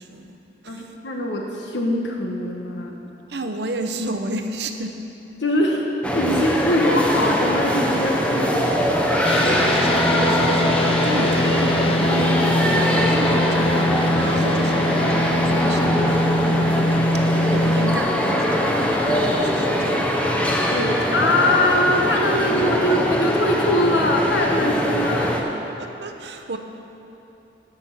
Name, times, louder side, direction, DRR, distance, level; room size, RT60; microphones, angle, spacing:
voice 1, 0.0-0.9 3.3-5.0 6.3-6.4 9.3-20.0 25.8-26.6, right 2 dB, 70° right, 6 dB, 0.8 m, -31 dB
voice 2, 0.7-2.9 5.4-5.9 6.1-8.8 20.7-25.5, left 1 dB, 85° left, 0 dB, 1.2 m, -22 dB
sound 1, 6.0-25.4, equal, 5° left, 0.8 m, -22 dB
sound 2, 9.2-18.0, left 1 dB, 30° left, 0.5 m, -22 dB
12.5 x 6.0 x 7.9 m, 2.9 s
head